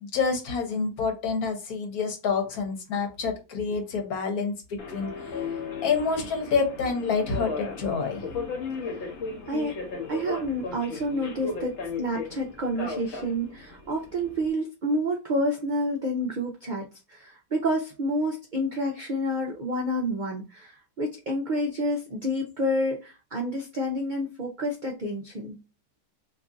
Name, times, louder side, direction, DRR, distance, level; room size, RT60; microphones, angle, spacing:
voice 1, 0.0-5.1 5.8-8.2, left 5 dB, 75° left, 4 dB, 1.4 m, -28 dB
Subway metro underground, 4.8-14.5, left 4 dB, 55° left, 0.9 m, -36 dB
voice 2, 10.1-25.6, equal, 60° right, 0 dB, 0.4 m, -29 dB
3.0 x 2.4 x 3.8 m, 0.29 s
omnidirectional pair, 1.6 m